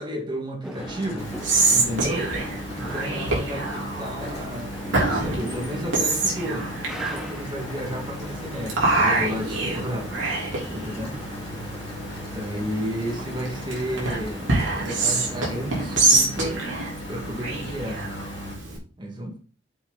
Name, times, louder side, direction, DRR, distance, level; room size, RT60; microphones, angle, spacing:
voice 1, 0.0-1.3 1.7-2.3 2.7-6.7 7.1-10.2 10.7-11.2 12.3-14.5 14.8-16.6 17.1-18.1 19.0-19.4, equal, 25° right, 0 dB, 2.0 m, -32 dB
sound 1, 0.6-16.1, equal, ahead, 1.2 m, -41 dB
Mechanical fan, 0.8-18.6, left 1 dB, 35° left, 2.5 m, -38 dB
Whispering, 1.2-18.8, right 2 dB, 75° right, 3.3 m, -26 dB
7.2 x 6.3 x 4.0 m, 0.38 s
head